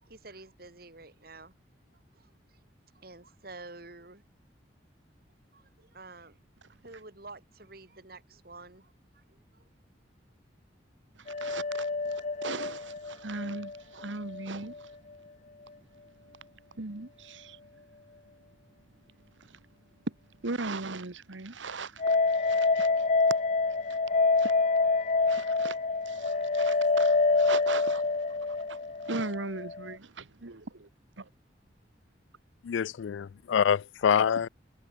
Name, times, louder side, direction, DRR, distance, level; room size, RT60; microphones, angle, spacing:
voice 1, 0.0-1.5 2.1-2.3 2.9-4.2 5.5-6.4 6.8-9.6, right 3 dB, 55° right, 2.9 m, -49 dB
voice 2, 11.2-14.9 16.8-17.6 19.4-19.5 20.1-20.2 20.4-23.0 23.9-24.0 24.4-24.5 25.3-25.8 26.0-30.9 31.2-31.3, right 3 dB, 85° right, 1.5 m, -39 dB
sound 1, 11.3-14.5 14.7-14.8 22.0-29.9, left 3 dB, 40° left, 0.7 m, -27 dB
voice 3, 32.6-34.5, left 7 dB, 85° left, 0.4 m, -26 dB
head